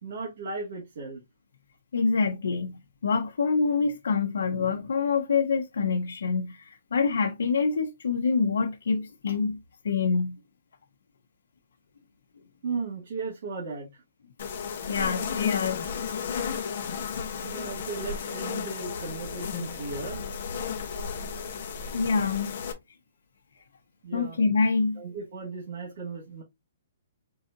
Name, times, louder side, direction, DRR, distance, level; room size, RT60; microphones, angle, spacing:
voice 1, 0.0-1.2 12.6-14.0 17.4-20.2 24.0-24.4 25.0-26.4, right 4 dB, 40° right, 1.9 m, -36 dB
voice 2, 1.9-9.6 9.8-10.4 14.9-16.0 16.6-16.7 21.9-22.5 24.1-25.0, left 5 dB, 80° left, 0.8 m, -26 dB
sound 1, 14.4-22.7, left 6 dB, 40° left, 1.0 m, -33 dB
4.8 x 3.9 x 2.6 m
hypercardioid pair, 180°, 0 cm